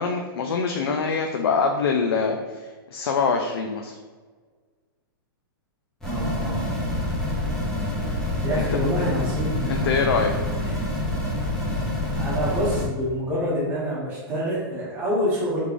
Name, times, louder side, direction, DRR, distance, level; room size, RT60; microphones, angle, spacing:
voice 1, 0.0-4.0 9.7-10.5, left 5 dB, 80° left, 3 dB, 0.4 m, -24 dB
sound 1, 6.0-12.8, left 1 dB, 5° left, 0.4 m, -27 dB
voice 2, 6.0-6.7 8.4-10.1 10.6-10.8 12.1-15.6, equal, 15° right, -7 dB, 0.9 m, -27 dB
3.4 x 3.3 x 2.5 m, 1.5 s
hypercardioid pair, 175°, 13 cm